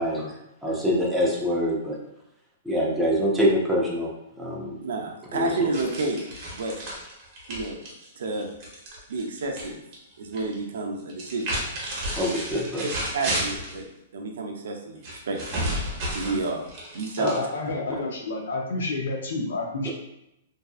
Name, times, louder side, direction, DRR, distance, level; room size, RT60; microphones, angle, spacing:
voice 1, 0.0-0.3 0.6-2.0 2.7-4.1 4.4-4.7 5.3-5.5 12.1-12.8 17.2-17.4, equal, ahead, -5 dB, 0.5 m, -24 dB
voice 2, 4.8-6.2 6.5-6.8 7.5-7.8 8.2-8.5 9.1-9.8 10.2-11.6 13.1-13.8 14.1-15.7 16.1-16.6 16.9-17.3, right 3 dB, 80° right, 2 dB, 0.5 m, -30 dB
sound 1, 5.7-9.7 9.9-10.5 11.1-13.8 15.0-17.7, right 1 dB, 30° right, 0.8 m, -32 dB
voice 3, 17.2-19.9, left 2 dB, 80° left, 1 dB, 0.6 m, -29 dB
2.6 x 2.5 x 2.3 m, 0.85 s
hypercardioid pair, 165°, 0 cm